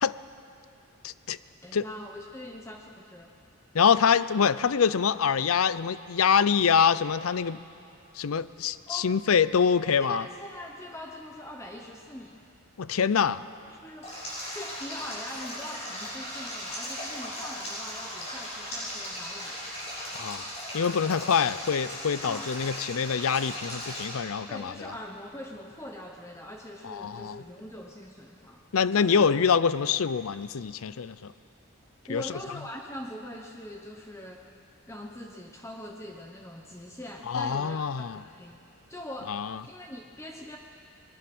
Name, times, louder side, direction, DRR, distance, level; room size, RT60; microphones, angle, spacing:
voice 1, 1.0-1.4 1.7-1.8 3.7-7.6 8.2-10.2 12.8-13.4 20.2-20.5 20.7-24.9 26.8-27.4 28.7-31.3 32.1-32.2 37.3-38.2 39.3-39.6, left 6 dB, 75° left, 16 dB, 0.5 m, -25 dB
voice 2, 1.6-3.3 8.9-9.1 10.0-12.4 13.7-14.2 14.5-19.6 22.2-22.5 24.5-28.6 28.9-29.3 32.1-34.5 34.9-40.6, left 1 dB, 10° left, 1 dB, 0.9 m, -42 dB
Stream, 14.0-24.0, equal, 30° left, 7.1 m, -37 dB
24.5 x 20.0 x 6.1 m, 2.6 s
head